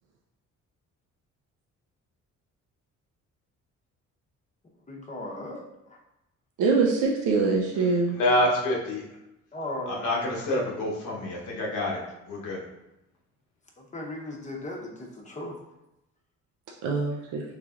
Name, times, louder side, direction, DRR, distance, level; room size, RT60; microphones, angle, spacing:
voice 1, 4.9-6.0 9.5-10.1 13.9-15.6, left 1 dB, 25° left, -1 dB, 0.8 m, -37 dB
voice 2, 6.6-8.2 16.8-17.4, right 4 dB, 90° right, 0 dB, 0.5 m, -24 dB
voice 3, 8.1-9.0 9.9-12.6, left 1 dB, 85° left, -2 dB, 1.0 m, -27 dB
3.7 x 3.2 x 2.4 m, 0.90 s
cardioid pair, 90°, 30 cm